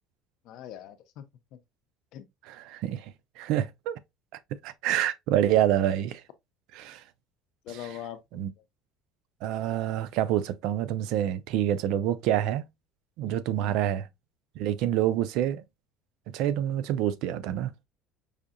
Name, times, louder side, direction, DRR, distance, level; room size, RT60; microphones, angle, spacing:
voice 1, 0.4-1.3 1.5-1.6 2.1-2.3 7.6-8.6 13.6-13.8, left 10 dB, 55° left, 0.6 m, -42 dB
voice 2, 2.5-3.1 3.4-3.9 4.6-6.2 6.7-7.0 8.3-8.5 9.4-12.6 13.2-14.1 14.6-15.6 16.3-17.7, right 11 dB, 65° right, 0.4 m, -27 dB
4.9 x 2.7 x 2.4 m
cardioid pair, 155°, 0 cm